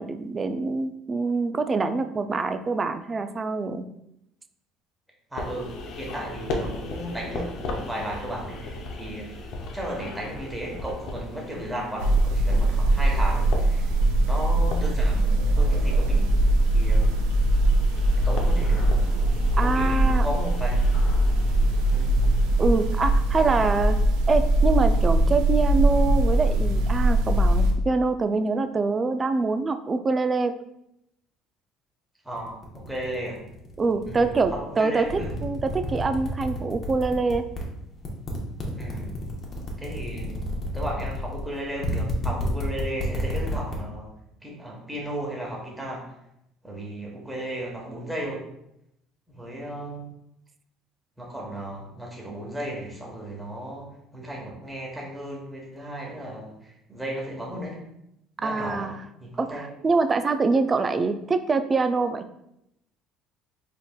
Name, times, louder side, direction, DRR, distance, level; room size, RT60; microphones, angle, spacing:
voice 1, 0.0-3.8 19.6-20.3 22.6-24.0 24.3-30.5 33.8-37.4 58.4-59.0 59.4-62.2, right 4 dB, 30° right, 9 dB, 0.3 m, -25 dB
voice 2, 5.3-9.3 9.7-13.9 14.3-15.2 15.6-16.3 16.7-17.3 18.2-19.0 19.6-20.7 21.8-22.1 23.5-23.7 32.2-33.4 34.0-35.3 38.7-39.1 39.8-40.4 40.7-44.1 44.4-46.0 46.6-48.4 49.3-50.1 51.2-57.8 58.4-58.9 59.2-59.6, right 1 dB, 5° right, -3 dB, 1.1 m, -35 dB
sound 1, 5.4-24.0, left 2 dB, 70° left, 0.6 m, -38 dB
sound 2, 12.0-27.7, right 1 dB, 90° right, 0.5 m, -21 dB
sound 3, 32.4-34.6 35.0-37.6 38.0-43.8, left 2 dB, 45° left, 0.9 m, -31 dB
3.9 x 3.5 x 2.3 m, 0.81 s
supercardioid pair, 95°, 0 cm